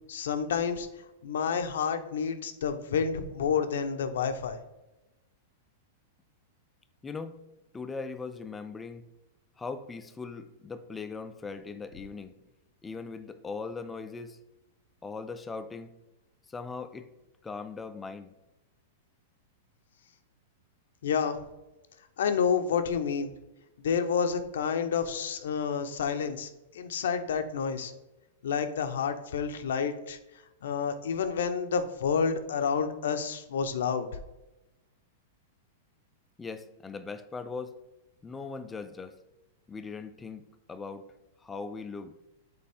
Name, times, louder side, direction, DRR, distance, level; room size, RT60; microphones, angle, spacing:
voice 1, 0.1-0.9 1.2-4.6 21.0-21.4 22.2-23.3 23.8-26.5 26.7-27.9 28.4-30.2 30.6-34.1, left 6 dB, 80° left, 0.7 m, -29 dB
voice 2, 7.0-7.4 7.7-9.0 9.6-12.3 12.8-14.4 15.0-15.9 16.5-17.1 17.4-18.3 36.4-37.7 38.2-39.2 39.7-40.4 40.7-41.1 41.4-42.1, left 4 dB, 10° left, 0.4 m, -39 dB
6.7 x 4.2 x 3.5 m
hypercardioid pair, 140°, 0 cm